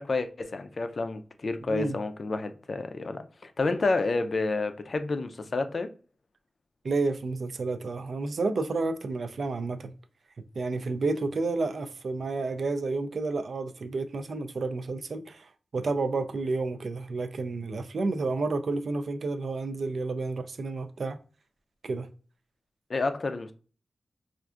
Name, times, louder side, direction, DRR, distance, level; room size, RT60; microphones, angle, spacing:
voice 1, 0.0-5.9 22.9-23.5, left 3 dB, 50° left, 0.4 m, -29 dB
voice 2, 6.8-9.9 10.5-21.2 21.8-22.1, right 3 dB, 70° right, 0.3 m, -30 dB
4.4 x 2.4 x 2.4 m
wide cardioid pair, 100°, 0 cm